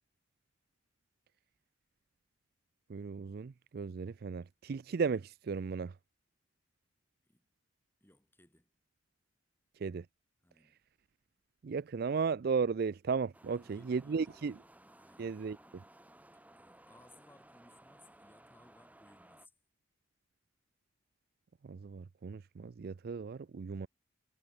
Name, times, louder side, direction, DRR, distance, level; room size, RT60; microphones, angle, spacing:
voice 1, 2.9-5.9 9.8-10.1 11.6-14.5 15.2-15.8 21.6-23.9, right 5 dB, 55° right, 0.4 m, -35 dB
voice 2, 8.0-8.7 10.4-10.8 13.5-14.6 15.0-15.4 16.3-19.5, left 1 dB, 10° left, 7.6 m, -64 dB
sound 1, 13.3-19.5, right 1 dB, 10° right, 3.0 m, -59 dB
head